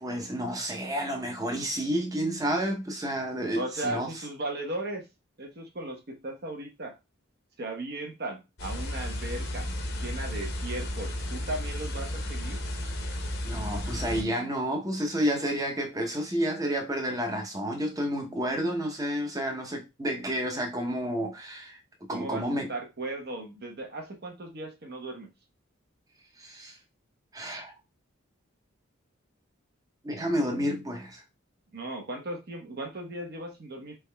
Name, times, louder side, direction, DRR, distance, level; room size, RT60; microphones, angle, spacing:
voice 1, 0.0-4.1 13.4-21.8 22.1-22.7 26.4-26.8 27.3-27.7 30.0-31.2, equal, 15° right, 0.8 m, -30 dB
voice 2, 3.5-5.1 5.4-6.9 7.6-9.7 10.0-12.6 22.1-25.3 31.7-34.0, right 2 dB, 50° right, 0.9 m, -37 dB
sound 1, 8.6-14.2, left 1 dB, 55° left, 0.8 m, -33 dB
4.2 x 3.5 x 2.2 m
head